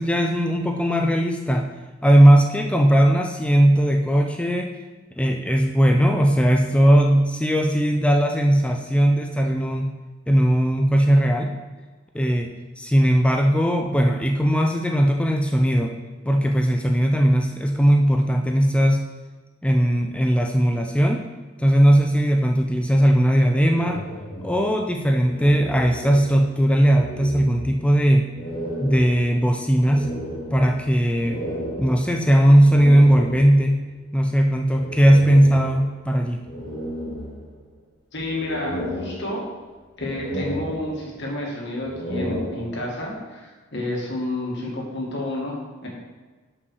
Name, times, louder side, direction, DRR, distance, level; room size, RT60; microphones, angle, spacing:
voice 1, 0.0-1.7 2.0-4.7 5.2-9.9 10.3-11.5 12.1-15.9 16.2-19.0 19.6-21.2 21.6-24.1 24.4-28.3 28.8-30.1 30.5-31.4 31.8-33.8 34.1-36.4, equal, 5° left, 3 dB, 0.4 m, -18 dB
sound 1, 23.7-26.6 26.8-27.9 28.3-33.8 34.7-36.0 36.5-37.8 38.2-39.7 40.0-41.3 41.7-43.1, equal, 25° left, 1.6 m, -33 dB
voice 2, 38.1-39.4 40.0-45.9, left 1 dB, 60° left, -2 dB, 2.0 m, -30 dB
5.6 x 5.4 x 6.3 m, 1.3 s
head